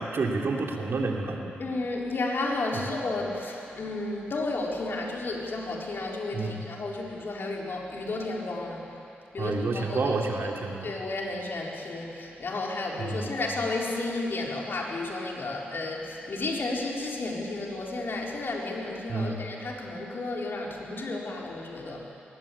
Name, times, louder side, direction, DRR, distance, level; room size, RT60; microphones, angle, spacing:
voice 1, 0.0-1.5 2.7-2.9 6.3-6.6 9.4-10.9 13.0-13.3 19.1-19.4, right 3 dB, 65° right, 1 dB, 2.9 m, -29 dB
voice 2, 1.6-8.8 9.3-10.0 10.8-22.1, left 2 dB, 60° left, -1 dB, 4.2 m, -32 dB
21.0 x 18.5 x 8.6 m, 2.8 s
cardioid pair, 55°, 4 cm